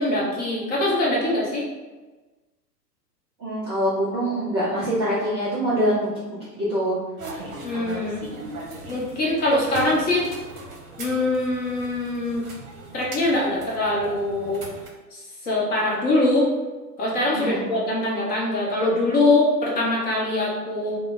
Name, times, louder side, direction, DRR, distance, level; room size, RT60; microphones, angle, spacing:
voice 1, 0.0-1.7 7.6-8.3 8.9-10.3 11.0-12.5 12.9-14.6 15.1-16.5 17.0-21.0, left 2 dB, 20° left, -5 dB, 0.7 m, -23 dB
voice 2, 3.4-6.1 6.6-7.0 17.4-17.8, equal, 20° right, -10 dB, 0.5 m, -24 dB
sound 1, 7.2-14.9, right 1 dB, 55° right, 0.9 m, -38 dB
3.2 x 2.1 x 3.6 m, 1.2 s
figure-of-eight pair, 110°, 50 cm